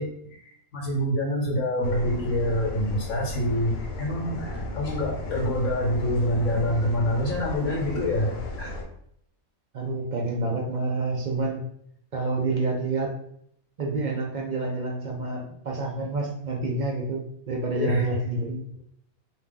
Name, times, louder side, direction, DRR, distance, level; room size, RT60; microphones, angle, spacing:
voice 1, 0.0-8.7 17.7-18.0, left 1 dB, 75° left, -1 dB, 1.2 m, -26 dB
sound 1, 1.8-8.8, left 1 dB, 55° left, 0.9 m, -35 dB
voice 2, 9.7-11.6 12.1-13.1 13.8-18.6, right 2 dB, 45° right, 0 dB, 0.6 m, -28 dB
4.3 x 2.8 x 3.7 m, 0.70 s
omnidirectional pair, 1.5 m